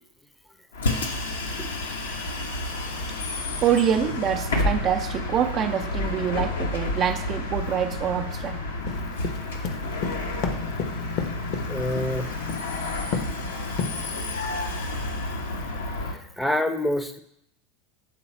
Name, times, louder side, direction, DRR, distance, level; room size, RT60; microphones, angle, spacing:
Bus, 0.7-16.2, left 2 dB, 80° left, 0.9 m, -30 dB
voice 1, 3.6-8.6, right 9 dB, 40° right, 7 dB, 0.5 m, -25 dB
sound 1, 8.9-12.1 12.5-12.8 13.1-13.4 13.8-14.3, left 5 dB, 55° left, 0.8 m, -30 dB
voice 2, 11.7-12.4 13.1-13.3 13.5-13.7 16.1-17.2, left 1 dB, 10° left, 8 dB, 0.6 m, -27 dB
7.4 x 3.9 x 4.3 m, 0.76 s
hypercardioid pair, 90°, 0 cm